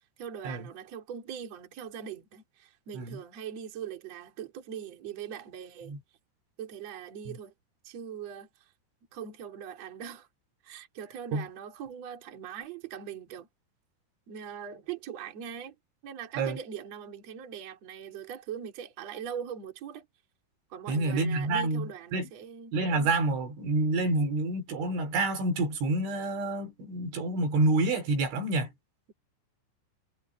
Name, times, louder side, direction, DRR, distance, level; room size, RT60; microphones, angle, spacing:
voice 1, 0.2-5.9 6.6-7.5 7.8-8.7 9.1-10.3 10.6-13.5 14.3-15.8 16.0-20.1 20.7-22.7, right 8 dB, 35° right, 3.7 m, -41 dB
voice 2, 20.9-22.3 22.7-28.7, right 2 dB, 65° right, 6.3 m, -28 dB
omnidirectional pair, 6.0 m